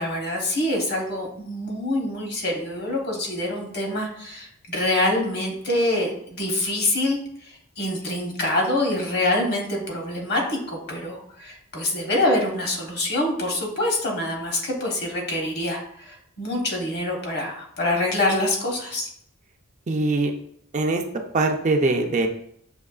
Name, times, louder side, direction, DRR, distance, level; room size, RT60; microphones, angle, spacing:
voice 1, 0.0-19.1, left 1 dB, 55° left, 0 dB, 1.1 m, -25 dB
voice 2, 19.9-20.3 20.7-21.0 21.3-22.3, right 2 dB, 35° right, 4 dB, 0.4 m, -22 dB
6.4 x 2.9 x 2.4 m, 0.68 s
head